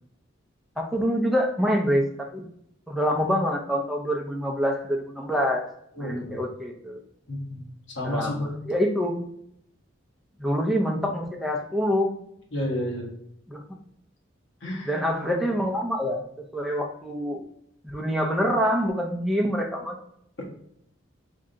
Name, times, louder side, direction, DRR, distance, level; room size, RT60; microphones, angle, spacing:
voice 1, 0.8-2.5 2.9-5.7 6.0-7.0 8.0-9.3 10.4-12.1 13.5-13.6 14.8-16.2 16.5-17.4 17.9-20.0, equal, ahead, 1 dB, 0.5 m, -26 dB
voice 2, 6.0-6.4 7.3-7.6 8.0-8.6 12.5-13.0 14.6-14.9, left 1 dB, 65° left, -2 dB, 1.4 m, -30 dB
3.7 x 3.3 x 3.8 m, 0.73 s
head